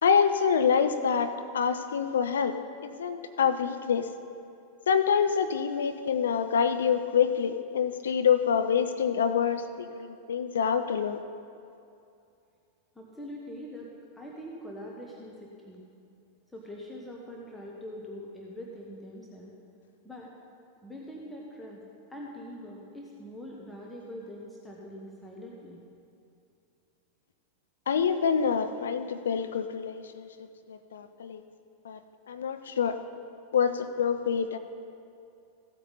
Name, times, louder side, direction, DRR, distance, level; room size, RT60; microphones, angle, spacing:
voice 1, 0.0-2.6 2.8-4.1 4.9-11.2 27.9-30.3 30.7-31.4 31.8-32.0 32.3-33.0 33.5-34.6, left 7 dB, 65° left, 9 dB, 0.5 m, -26 dB
voice 2, 12.9-15.8 16.5-19.5 20.0-20.3 20.8-21.8 22.1-25.8, equal, 5° left, -3 dB, 1.4 m, -43 dB
15.5 x 8.3 x 4.1 m, 2.6 s
figure-of-eight pair, 90°, 0 cm